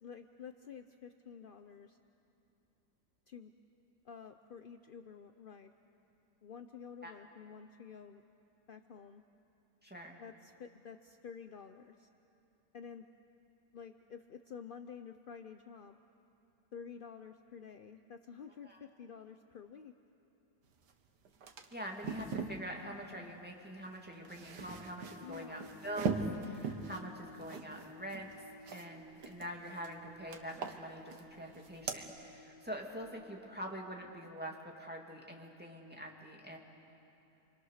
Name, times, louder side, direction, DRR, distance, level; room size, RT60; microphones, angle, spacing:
voice 1, 0.0-2.0 3.3-3.5 4.0-5.7 6.4-8.2 8.7-9.2 10.2-12.1 12.7-13.1 13.7-16.0 16.7-19.9 25.2-25.7, left 7 dB, 60° left, 8 dB, 0.5 m, -50 dB
voice 2, 9.8-10.2 18.6-18.8 21.7-28.3 28.7-36.6, equal, 5° right, 0 dB, 2.4 m, -45 dB
sound 1, 20.9-21.0 21.3-22.6 24.0-28.9 29.2-29.9 30.3-31.3 31.5-32.0, right 4 dB, 85° right, 1.9 m, -41 dB
sound 2, 25.1-34.2, left 1 dB, 85° left, 1.6 m, -57 dB
28.5 x 24.5 x 6.6 m, 2.8 s
omnidirectional pair, 1.7 m